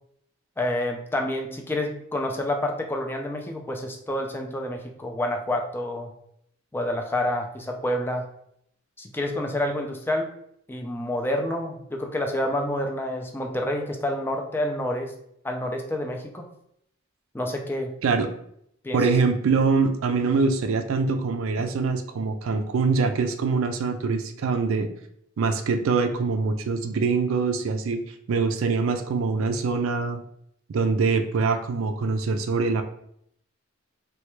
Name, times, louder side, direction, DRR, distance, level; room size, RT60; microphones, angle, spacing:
voice 1, 0.6-6.1 6.7-8.3 9.0-10.3 10.7-15.1 15.4-16.5 17.3-17.9 18.8-19.0, left 1 dB, 10° left, 2 dB, 0.3 m, -28 dB
voice 2, 18.9-24.9 25.4-28.0 28.3-30.2 30.7-32.8, right 4 dB, 80° right, 7 dB, 0.4 m, -24 dB
3.1 x 2.2 x 3.0 m, 0.71 s
head